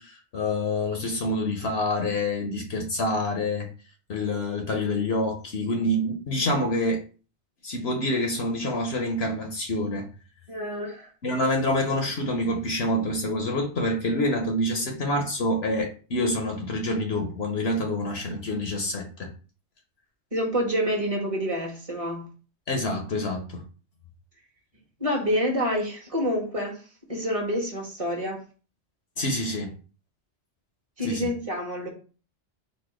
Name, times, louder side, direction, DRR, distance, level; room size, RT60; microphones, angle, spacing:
voice 1, 0.0-3.7 4.1-7.0 7.6-10.1 11.2-19.3 22.7-23.6 29.2-29.7 31.0-31.3, left 1 dB, 65° left, 1.1 m, -27 dB
voice 2, 10.5-11.1 20.3-22.3 25.0-26.8 27.1-28.4 31.0-31.9, equal, 30° right, 1.4 m, -27 dB
4.3 x 2.5 x 4.8 m
omnidirectional pair, 1.2 m